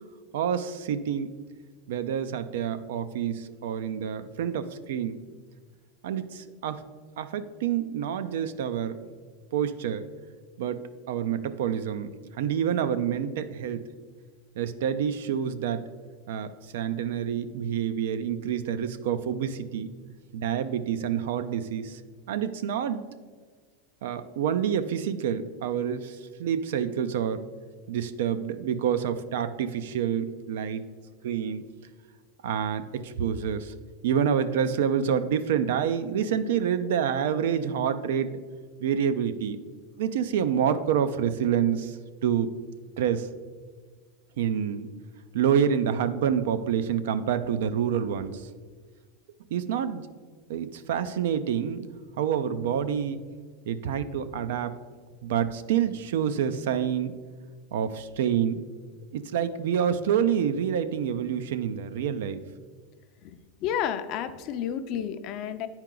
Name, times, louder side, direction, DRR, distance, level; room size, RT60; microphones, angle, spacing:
voice 1, 0.3-1.3 1.9-5.2 6.0-6.8 7.2-9.0 9.5-10.0 10.6-10.8 11.1-12.1 12.4-13.9 14.6-15.8 16.3-19.9 20.3-22.0 22.3-23.0 24.0-27.4 27.9-30.9 31.2-31.6 32.4-33.7 34.0-38.4 38.8-39.6 40.0-42.0 42.2-42.5 43.0-43.3 44.4-44.9 45.3-48.5 49.5-50.1 50.5-51.9 52.2-53.2 53.7-54.7 55.2-57.1 57.7-58.6 59.1-62.4, right 8 dB, 75° right, 11 dB, 0.5 m, -27 dB
voice 2, 63.2-65.7, left 9 dB, 45° left, 10 dB, 0.5 m, -31 dB
9.2 x 4.4 x 3.8 m, 1.5 s
supercardioid pair, 130°, 0 cm